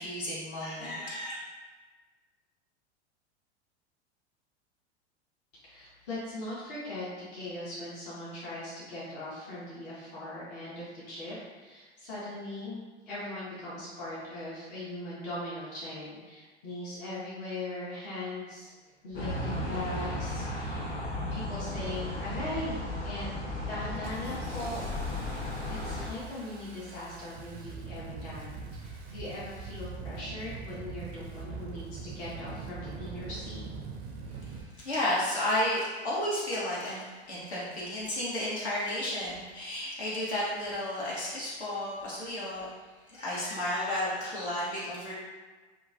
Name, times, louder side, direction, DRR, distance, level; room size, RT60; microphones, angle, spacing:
voice 1, 0.0-1.3 34.3-42.7 43.1-45.1, left 1 dB, 70° left, -8 dB, 1.3 m, -32 dB
voice 2, 5.6-7.1 7.3-18.7 19.0-20.8 21.3-23.3 23.7-24.8 25.7-28.5 28.8-33.6, left 1 dB, 50° left, -8 dB, 1.0 m, -40 dB
Engine starting, 18.3-18.4 19.1-19.4 20.1-20.5 20.8-21.3 21.8-22.3 22.7-22.9 23.2-34.6, right 4 dB, 25° right, 0.4 m, -43 dB
sound 1, 19.1-26.1, left 1 dB, 30° left, 0.7 m, -35 dB
2.9 x 2.3 x 2.6 m, 1.3 s
hypercardioid pair, 90°, 34 cm